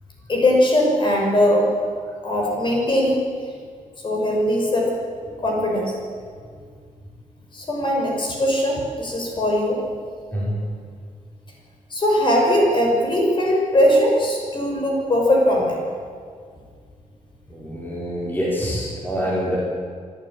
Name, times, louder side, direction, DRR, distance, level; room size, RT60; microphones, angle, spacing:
voice 1, 0.3-1.8 2.2-3.2 4.0-4.9 5.4-5.9 7.5-9.8 11.9-15.9 19.1-19.3, left 1 dB, 35° left, -1 dB, 6.0 m, -20 dB
voice 2, 17.5-19.6, equal, 15° left, -5 dB, 4.3 m, -26 dB
25.5 x 12.5 x 10.0 m, 2.1 s
wide cardioid pair, 145°, 14 cm